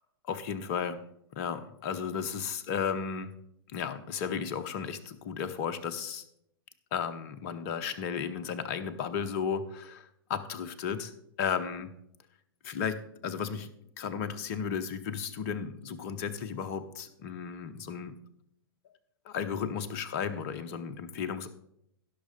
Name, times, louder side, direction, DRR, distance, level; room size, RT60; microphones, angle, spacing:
voice 1, 0.3-1.0 1.3-3.3 3.7-6.2 6.9-11.1 11.4-11.9 12.6-13.7 14.0-18.2 19.3-21.5, left 7 dB, 40° left, 10 dB, 0.9 m, -34 dB
16.5 x 6.2 x 4.1 m, 0.74 s
figure-of-eight pair, 100°, 13 cm